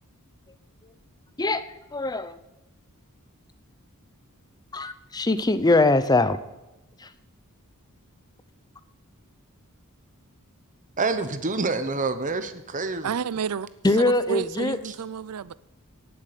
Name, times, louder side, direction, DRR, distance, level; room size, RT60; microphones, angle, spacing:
voice 1, 1.9-2.4 4.7-6.4 7.0-7.1 13.8-14.8, left 2 dB, 20° left, 0.6 m, -22 dB
voice 2, 11.0-13.2 14.8-14.9, right 3 dB, 35° right, 1.0 m, -27 dB
voice 3, 13.0-13.7 14.3-15.5, right 7 dB, 85° right, 0.5 m, -30 dB
17.5 x 7.5 x 6.8 m
head